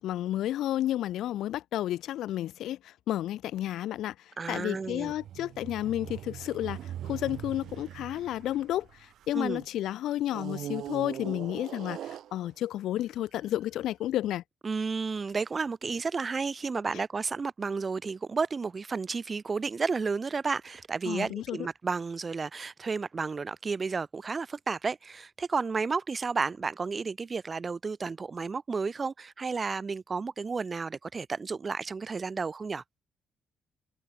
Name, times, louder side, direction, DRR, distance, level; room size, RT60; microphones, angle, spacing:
voice 1, 0.0-14.4 21.0-21.6, left 13 dB, 80° left, 0.8 m, -32 dB
voice 2, 4.4-5.1 9.3-9.6 14.6-32.8, right 4 dB, 35° right, 0.7 m, -32 dB
sound 1, 4.8-9.5 10.3-12.8 13.5-13.6, right 11 dB, 75° right, 0.6 m, -41 dB
cardioid pair, 90°, 0 cm